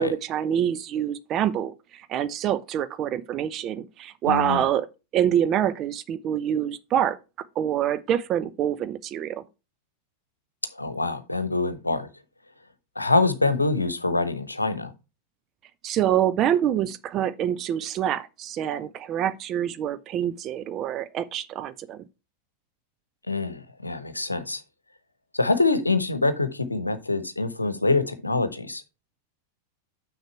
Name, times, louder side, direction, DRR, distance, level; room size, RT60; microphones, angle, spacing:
voice 1, 0.0-4.9 5.1-7.2 7.6-9.4 15.8-22.0, right 10 dB, 35° right, 0.6 m, -26 dB
voice 2, 4.3-4.6 10.7-12.1 13.0-14.9 23.3-24.6 25.3-28.8, left 3 dB, 85° left, 0.9 m, -25 dB
6.6 x 6.4 x 4.5 m
figure-of-eight pair, 90°, 0 cm